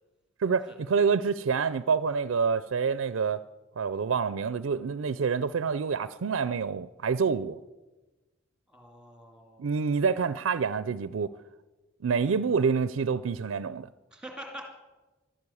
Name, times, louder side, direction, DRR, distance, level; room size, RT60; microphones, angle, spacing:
voice 1, 0.4-3.4 3.8-7.6 9.6-11.4 12.0-13.9, right 5 dB, 90° right, 0.4 m, -27 dB
voice 2, 8.7-9.9 14.1-14.7, equal, 5° right, 2.6 m, -45 dB
12.5 x 12.0 x 9.8 m
head